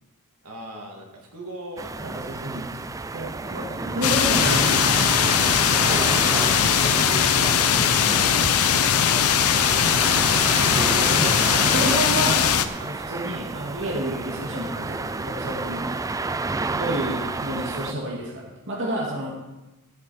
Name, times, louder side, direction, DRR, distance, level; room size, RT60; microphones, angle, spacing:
voice 1, 0.4-2.3 3.4-3.8 5.7-8.4 8.8-10.1 10.7-11.9 12.6-12.8 15.6-15.8, right 1 dB, 80° right, 0 dB, 2.7 m, -39 dB
sound 1, 1.8-17.9, right 3 dB, 15° right, 0.3 m, -30 dB
voice 2, 2.0-2.8 3.1-5.0 11.0-11.3 11.6-12.5 12.8-15.9 16.7-19.3, right 1 dB, 60° right, -3 dB, 2.2 m, -29 dB
sound 2, 4.0-12.7, left 8 dB, 80° left, 0.7 m, -20 dB
16.5 x 8.2 x 4.5 m, 1.0 s
head